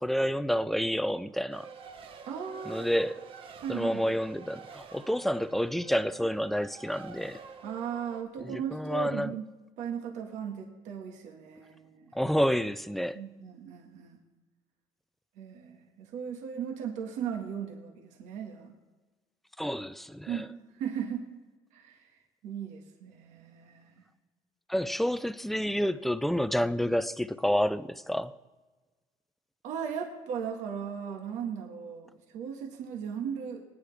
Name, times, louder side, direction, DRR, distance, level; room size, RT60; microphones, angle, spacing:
voice 1, 0.0-1.7 2.7-3.2 3.7-7.4 8.4-9.3 12.1-13.2 19.6-20.4 24.7-28.3, equal, ahead, 0.4 m, -29 dB
Race car auto racing, 1.5-8.2, right 6 dB, 45° right, 1.1 m, -48 dB
voice 2, 2.2-2.9 3.6-4.1 7.6-9.4 9.8-12.1 13.1-14.2 15.4-18.8 20.3-20.5 20.7-21.3 21.7-22.1 22.4-24.0 29.6-33.6, right 7 dB, 70° right, 1.7 m, -37 dB
22.0 x 9.9 x 3.5 m
cardioid pair, 125°, 13 cm